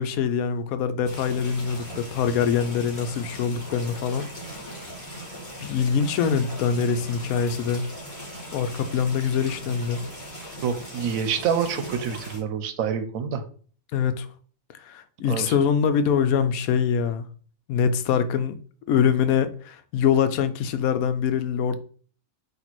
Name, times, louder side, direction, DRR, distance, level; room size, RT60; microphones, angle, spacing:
voice 1, 0.0-4.3 5.6-7.9 8.5-10.1 13.9-14.3 14.8-17.2 17.7-18.6 18.9-21.8, left 7 dB, 90° left, 1.0 m, -24 dB
sound 1, 1.0-12.4, equal, 40° left, 2.1 m, -39 dB
voice 2, 10.6-13.4 15.3-15.5, right 7 dB, 80° right, 1.0 m, -27 dB
4.5 x 2.9 x 4.1 m
omnidirectional pair, 1.4 m